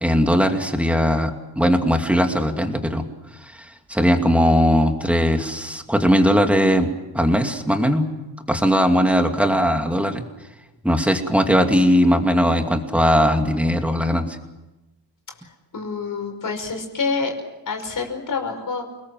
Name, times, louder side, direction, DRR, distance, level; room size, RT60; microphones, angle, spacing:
voice 1, 0.0-3.0 3.9-6.9 7.1-8.1 8.5-10.2 10.8-14.3, equal, 5° right, 4 dB, 2.6 m, -19 dB
voice 2, 15.7-17.4 17.7-18.8, left 4 dB, 50° left, 4 dB, 5.4 m, -27 dB
28.5 x 20.0 x 7.8 m, 1.0 s
cardioid pair, 125°, 42 cm